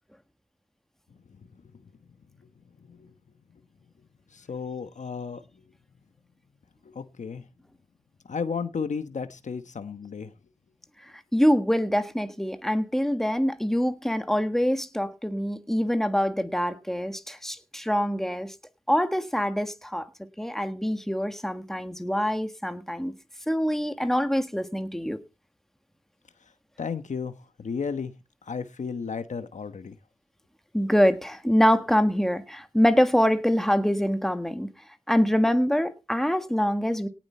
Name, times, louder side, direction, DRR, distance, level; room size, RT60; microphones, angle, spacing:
voice 1, 4.3-5.4 6.8-7.4 8.3-10.3 26.8-27.3 27.6-28.1 28.5-29.9, left 5 dB, 80° left, 1.2 m, -33 dB
voice 2, 11.3-18.5 18.9-23.1 23.5-25.2 30.7-34.7 35.1-37.1, equal, 5° left, 1.5 m, -25 dB
18.0 x 7.7 x 4.4 m
wide cardioid pair, 60°, 12 cm